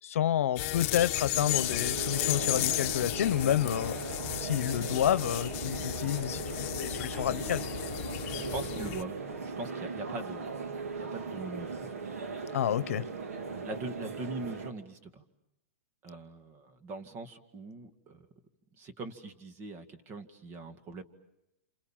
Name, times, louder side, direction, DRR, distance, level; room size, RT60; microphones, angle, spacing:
voice 1, 0.0-4.0 4.3-7.6 12.5-13.1, left 11 dB, 75° left, 17 dB, 1.0 m, -29 dB
sound 1, 0.6-9.0, left 16 dB, 45° left, 1.0 m, -34 dB
sound 2, 1.3-14.7, right 4 dB, 85° right, 2.6 m, -38 dB
voice 2, 8.3-10.6 10.9-12.0 13.6-15.2 16.0-18.3 18.8-21.0, right 3 dB, 30° right, 8 dB, 2.1 m, -42 dB
28.5 x 27.5 x 7.4 m, 0.86 s
hypercardioid pair, 135°, 8 cm